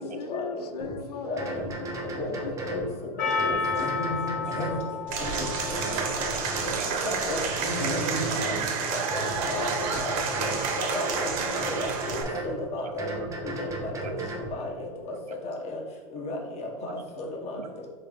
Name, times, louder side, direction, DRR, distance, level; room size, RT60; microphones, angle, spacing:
voice 1, 0.0-2.1 2.4-2.5, left 6 dB, 80° left, 10 dB, 0.4 m, -38 dB
sound 1, 0.8-1.0 1.4-2.9 3.3-4.8 5.2-6.8 7.2-8.7 9.1-10.6 11.0-12.6 13.0-14.5, right 1 dB, 15° right, 0.7 m, -35 dB
voice 2, 1.2-1.6 2.1-2.9 3.2-4.3 4.6-4.8 5.2-5.3 7.0-7.4 7.7-8.5 8.9-9.2 9.5-9.7 10.0-10.1 10.4-10.5 10.8-11.3 11.6-13.1 13.4-14.1 14.5-15.1 15.4-15.8 16.1-17.6, left 2 dB, 35° left, 1 dB, 1.0 m, -34 dB
Percussion, 3.2-7.7, left 5 dB, 55° left, 1.3 m, -32 dB
voice 3, 3.5-3.9 4.5-4.8 5.1-6.3 6.6-7.9 8.3-8.6 9.9-10.3 11.5-11.6 12.2-12.5 12.8-13.3 14.0-14.3 15.1-15.4 16.7-17.0 17.3-17.7, right 6 dB, 85° right, 8 dB, 0.5 m, -40 dB
Applause / Crowd, 5.1-12.2, right 5 dB, 45° right, 0.7 m, -30 dB
3.3 x 3.2 x 3.8 m, 1.4 s
hypercardioid pair, 110°, 19 cm